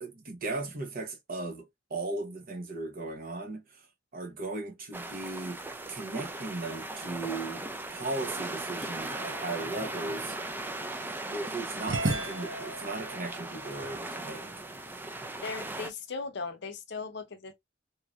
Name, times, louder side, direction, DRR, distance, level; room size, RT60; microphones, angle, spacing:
voice 1, 0.0-3.9 4.1-10.4 11.0-14.5, right 2 dB, 50° right, 0.9 m, -37 dB
sound 1, 4.9-15.9, right 2 dB, 10° right, 0.4 m, -38 dB
sound 2, 9.0-11.1 11.9-14.8, right 2 dB, 75° right, 0.9 m, -37 dB
voice 2, 15.4-17.5, left 4 dB, 65° left, 0.7 m, -38 dB
3.1 x 2.8 x 2.4 m
head